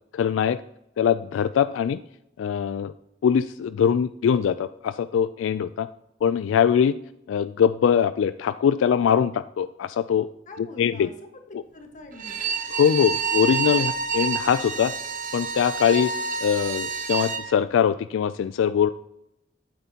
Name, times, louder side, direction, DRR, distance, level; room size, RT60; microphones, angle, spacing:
voice 1, 0.1-0.6 1.0-2.0 2.4-2.9 3.2-5.9 6.2-7.0 7.3-10.3 10.8-11.1 12.7-14.9 15.3-16.1 16.4-18.9, left 8 dB, 85° left, 14 dB, 0.3 m, -22 dB
voice 2, 10.5-11.4 11.7-12.6, left 2 dB, 40° left, 4 dB, 1.4 m, -44 dB
Bowed string instrument, 12.1-17.5, right 5 dB, 45° right, 1.1 m, -28 dB
12.0 x 9.0 x 2.9 m, 0.83 s
head